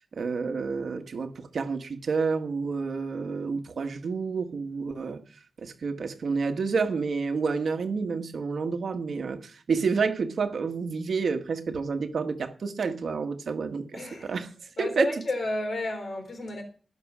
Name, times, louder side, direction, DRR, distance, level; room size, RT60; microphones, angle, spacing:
voice 1, 0.2-5.2 5.6-14.5 14.8-15.1, right 5 dB, 65° right, 1.5 m, -29 dB
voice 2, 13.9-14.4 14.8-16.6, left 2 dB, 60° left, 3.6 m, -31 dB
17.0 x 6.4 x 6.1 m
wide cardioid pair, 150°, 0 cm